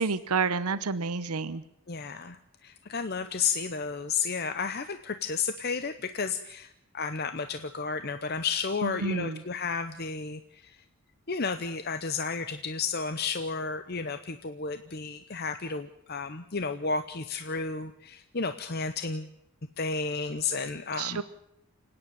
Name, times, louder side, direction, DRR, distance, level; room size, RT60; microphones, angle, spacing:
voice 1, 0.0-1.6 8.8-9.4 21.0-21.2, right 4 dB, 90° right, 14 dB, 0.8 m, -29 dB
voice 2, 1.9-10.8 11.3-19.3 19.8-21.2, left 5 dB, 45° left, 9 dB, 0.8 m, -32 dB
29.5 x 9.8 x 9.2 m, 0.79 s
head